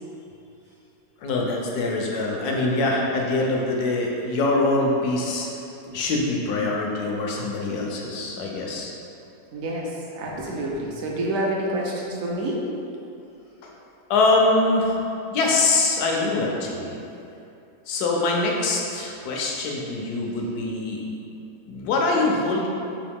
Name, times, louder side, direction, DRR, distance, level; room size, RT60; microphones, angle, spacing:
voice 1, 1.2-5.5 5.9-8.9 13.6-13.7 14.1-15.0 15.3-16.9 17.9-21.0 21.7-22.7, left 2 dB, 80° left, -1 dB, 1.1 m, -23 dB
voice 2, 9.5-12.7, right 1 dB, 70° right, -3 dB, 1.0 m, -28 dB
3.8 x 2.8 x 3.5 m, 2.7 s
omnidirectional pair, 1.6 m